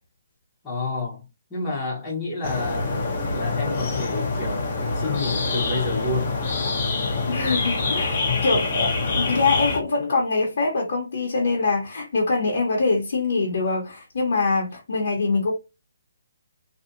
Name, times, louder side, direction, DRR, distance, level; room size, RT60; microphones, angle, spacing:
voice 1, 0.6-1.2 1.5-2.9 3.3-4.6 4.9-6.4 8.2-8.4, left 3 dB, 10° left, 1.1 m, -29 dB
sound 1, 2.4-9.8, left 3 dB, 30° left, 0.9 m, -25 dB
voice 2, 7.3-8.9 9.1-15.5, left 3 dB, 50° left, 1.1 m, -24 dB
2.9 x 2.8 x 2.6 m
hypercardioid pair, 175°, 0 cm